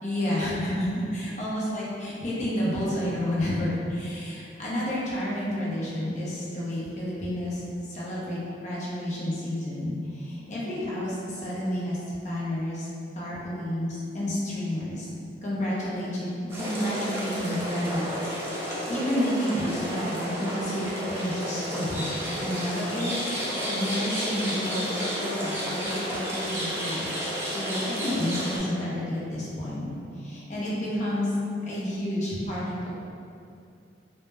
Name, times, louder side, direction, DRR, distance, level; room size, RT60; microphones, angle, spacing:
voice 1, 0.0-12.9 13.1-15.1 15.4-25.6 25.8-27.1 27.5-29.9 30.1-31.3 31.6-32.9, left 1 dB, 40° left, -7 dB, 0.6 m, -30 dB
sound 1, 16.5-28.6, equal, 15° right, 0.4 m, -31 dB
2.1 x 2.1 x 3.2 m, 2.5 s
head